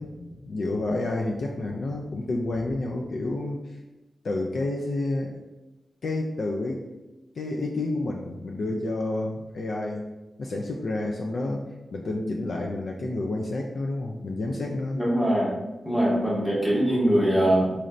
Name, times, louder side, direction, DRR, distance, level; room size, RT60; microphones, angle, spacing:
voice 1, 0.0-3.6 4.2-5.3 6.0-6.9 7.4-10.0 10.4-11.6 11.9-15.0, left 2 dB, 60° left, 0 dB, 0.3 m, -29 dB
voice 2, 14.9-15.5 15.8-17.7, right 1 dB, 15° left, -7 dB, 1.2 m, -22 dB
4.0 x 3.1 x 2.5 m, 1.1 s
wide cardioid pair, 135°, 0 cm